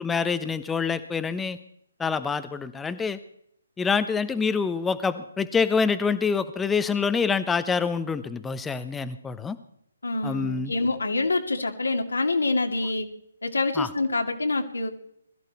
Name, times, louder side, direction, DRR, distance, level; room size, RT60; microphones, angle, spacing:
voice 1, 0.0-1.6 2.0-3.2 3.8-9.6 10.2-10.7 13.8-13.9, left 5 dB, 10° left, 12 dB, 0.9 m, -26 dB
voice 2, 10.0-13.1 13.4-14.9, left 3 dB, 70° left, 3 dB, 2.4 m, -26 dB
21.5 x 13.5 x 4.2 m, 0.70 s
figure-of-eight pair, 135°, 0 cm